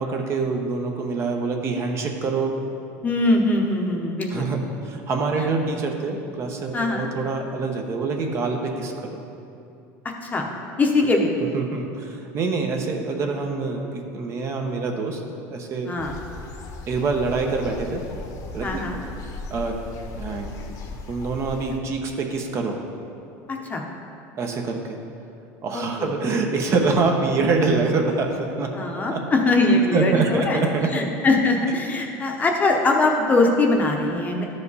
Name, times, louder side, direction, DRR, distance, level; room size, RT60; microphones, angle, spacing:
voice 1, 0.0-2.5 4.3-9.2 11.5-15.2 15.5-15.9 16.9-18.0 18.5-18.8 19.5-19.7 20.1-22.8 24.4-25.0 25.6-28.7 29.1-29.2 29.7-31.1, right 4 dB, 35° right, 2 dB, 0.9 m, -25 dB
voice 2, 3.0-4.4 6.7-7.1 10.2-10.4 10.8-11.3 15.8-16.1 18.6-19.0 23.5-23.8 25.7-26.1 28.7-30.6 30.9-34.4, left 2 dB, 20° left, 1 dB, 0.9 m, -21 dB
sound 1, 16.0-21.8, left 2 dB, 50° left, 1.0 m, -37 dB
12.5 x 5.0 x 4.1 m, 2.8 s
supercardioid pair, 125°, 8 cm